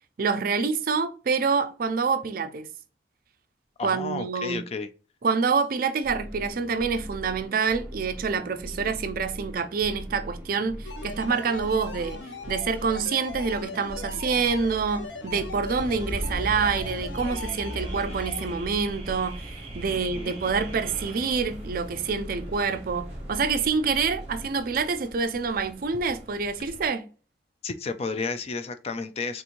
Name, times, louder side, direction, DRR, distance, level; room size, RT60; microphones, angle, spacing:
voice 1, 0.2-2.7 3.8-4.6 5.2-12.2 12.5-27.1, right 5 dB, 55° right, 0.4 m, -27 dB
voice 2, 3.8-4.9 19.9-20.3 27.6-29.4, left 4 dB, 35° left, 0.3 m, -32 dB
sound 1, 6.0-24.6, equal, 10° right, 0.8 m, -41 dB
sound 2, 10.8-18.5, left 3 dB, 90° left, 0.6 m, -40 dB
Car / Alarm, 15.7-26.9, right 1 dB, 35° right, 1.1 m, -39 dB
3.5 x 3.0 x 2.5 m
head